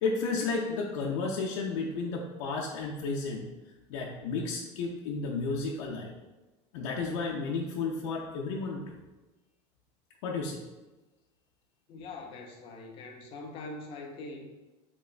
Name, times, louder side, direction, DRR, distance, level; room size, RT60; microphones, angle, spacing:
voice 1, 0.0-3.5 3.9-6.1 6.7-9.0 10.2-10.6, left 4 dB, 80° left, -2 dB, 0.5 m, -32 dB
voice 2, 11.9-14.5, left 2 dB, 35° left, 2 dB, 0.5 m, -43 dB
4.2 x 3.0 x 2.4 m, 1.1 s
cardioid pair, 160°, 16 cm